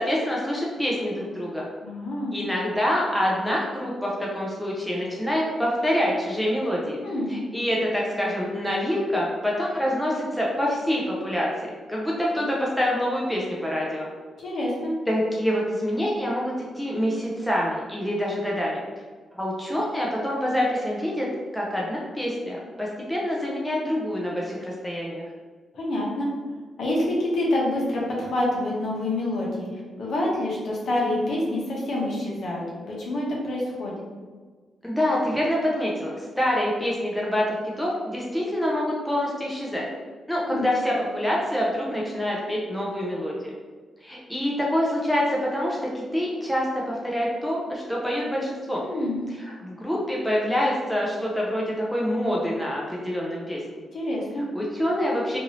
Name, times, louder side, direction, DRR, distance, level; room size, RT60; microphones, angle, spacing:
voice 1, 0.0-1.7 2.3-7.0 7.3-14.1 15.1-18.8 19.4-21.3 21.5-25.2 34.8-39.9 40.3-43.5 44.0-48.8 49.4-53.8 54.5-55.4, equal, ahead, -4 dB, 0.4 m, -26 dB
voice 2, 1.8-2.3 7.0-7.4 12.4-12.5 14.4-14.9 25.7-26.3 26.8-33.9 40.4-40.7 48.8-49.2 53.9-54.4, left 1 dB, 60° left, -4 dB, 0.8 m, -27 dB
2.6 x 2.6 x 2.9 m, 1.4 s
wide cardioid pair, 155°, 0 cm